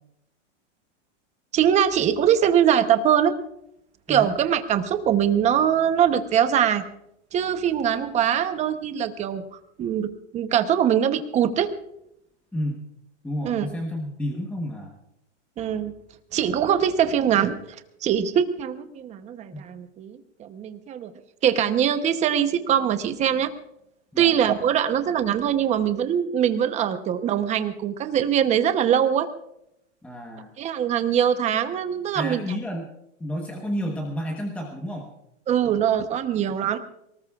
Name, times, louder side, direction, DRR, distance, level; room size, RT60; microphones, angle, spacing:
voice 1, 1.5-3.3 4.1-6.8 7.3-9.4 9.8-11.7 13.4-13.7 15.6-15.9 16.3-17.6 18.0-21.1 21.4-23.5 24.2-29.3 30.6-32.4 35.5-36.8, right 9 dB, 20° right, 10 dB, 0.9 m, -22 dB
voice 2, 12.5-12.8 13.2-14.9 19.5-19.6 24.1-24.4 30.0-30.5 32.1-32.9 33.2-35.1, equal, 5° left, 1 dB, 1.2 m, -31 dB
23.0 x 19.5 x 2.4 m, 0.79 s
supercardioid pair, 160°, 36 cm